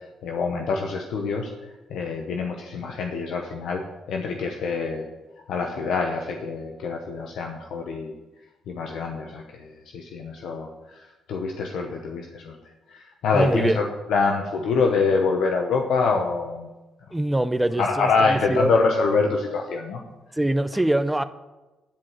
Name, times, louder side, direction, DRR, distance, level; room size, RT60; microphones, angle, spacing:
voice 1, 0.2-3.8 4.1-5.1 5.5-8.1 8.7-12.6 12.9-16.7 17.8-20.0, left 4 dB, 75° left, 2 dB, 0.9 m, -25 dB
voice 2, 13.3-13.8 17.1-18.7 20.4-21.2, right 1 dB, 10° right, 12 dB, 0.6 m, -23 dB
10.5 x 4.8 x 7.4 m, 1.1 s
cardioid pair, 90°, 0 cm